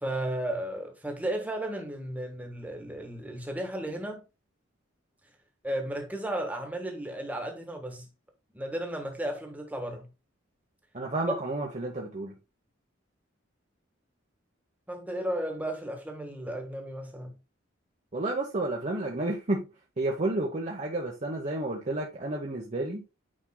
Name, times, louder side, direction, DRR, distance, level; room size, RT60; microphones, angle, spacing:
voice 1, 0.0-4.2 5.6-8.1 8.5-10.1 14.9-17.4, right 1 dB, 10° right, 1.4 m, -34 dB
voice 2, 10.9-12.3 18.1-19.7 20.0-23.0, right 2 dB, 35° right, 1.0 m, -31 dB
8.8 x 5.3 x 2.2 m
head